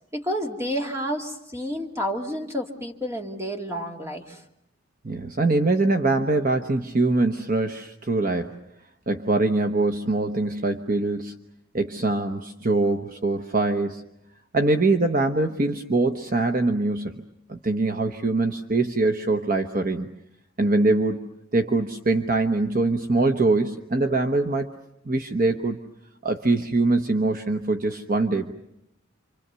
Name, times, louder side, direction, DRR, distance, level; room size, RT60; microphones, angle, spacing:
voice 1, 0.1-4.4, equal, 15° right, 1 dB, 2.3 m, -30 dB
voice 2, 5.0-8.6 9.1-11.3 11.7-14.0 14.5-17.2 17.5-20.1 20.6-24.7 25.0-25.8 26.2-28.5, right 2 dB, 40° right, 5 dB, 1.0 m, -23 dB
28.5 x 25.5 x 6.9 m, 0.81 s
head